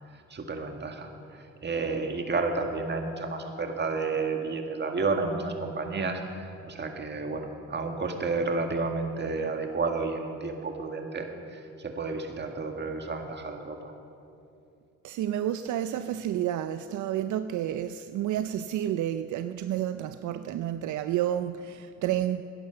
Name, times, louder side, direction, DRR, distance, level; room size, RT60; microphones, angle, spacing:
voice 1, 0.3-13.9, right 3 dB, 35° right, 4 dB, 1.9 m, -31 dB
voice 2, 15.0-22.4, right 11 dB, 75° right, 10 dB, 0.5 m, -30 dB
15.5 x 10.5 x 6.8 m, 2.6 s
cardioid pair, 90°, 30 cm